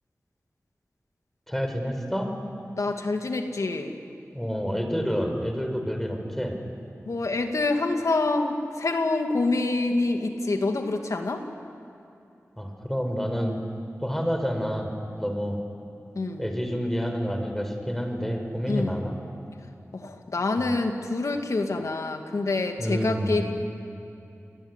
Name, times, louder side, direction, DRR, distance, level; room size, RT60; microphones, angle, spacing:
voice 1, 1.5-2.3 4.3-6.6 12.6-13.6 14.0-15.6 16.4-19.2 20.6-20.7 22.8-23.5, equal, 5° left, 5 dB, 5.3 m, -28 dB
voice 2, 2.8-3.9 7.1-11.4 16.2-16.4 18.7-19.0 19.9-23.5, left 3 dB, 85° left, 4 dB, 2.3 m, -26 dB
28.0 x 21.5 x 9.9 m, 2.7 s
wide cardioid pair, 50°, 5 cm